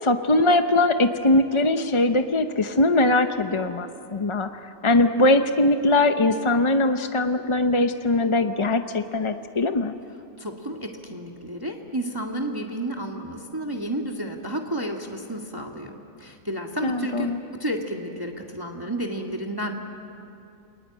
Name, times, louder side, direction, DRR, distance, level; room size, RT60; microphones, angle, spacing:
voice 1, 0.0-9.9 16.8-17.4, left 2 dB, 35° left, 7 dB, 0.5 m, -21 dB
voice 2, 10.4-17.3 17.6-19.7, right 1 dB, 15° right, 1 dB, 1.7 m, -31 dB
29.5 x 22.0 x 8.9 m, 2.7 s
omnidirectional pair, 1.7 m